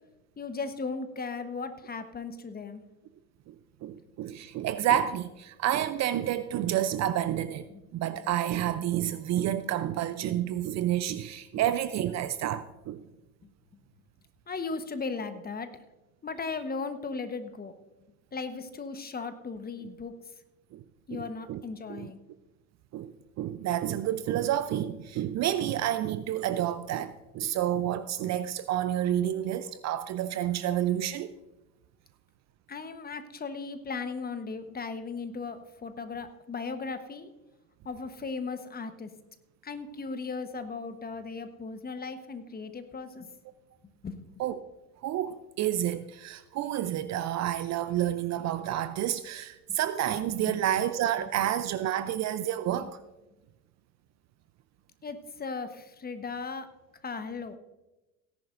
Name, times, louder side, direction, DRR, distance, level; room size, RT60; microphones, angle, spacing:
voice 1, 0.4-2.8 7.7-7.8 14.5-15.7 16.2-17.7 18.3-20.1 21.1-22.2 32.7-37.3 37.8-39.1 39.6-43.3 44.0-44.3 49.7-49.8 50.5-50.6 52.8-52.9 55.0-56.7 57.0-57.6, left 4 dB, 20° left, 1.2 m, -37 dB
voice 2, 3.8-13.0 20.7-20.8 21.1-21.6 21.9-22.1 22.9-31.3 44.4-44.6 45.0-53.0, right 11 dB, 40° right, 0.6 m, -29 dB
17.5 x 10.5 x 2.6 m
hypercardioid pair, 80°, 44 cm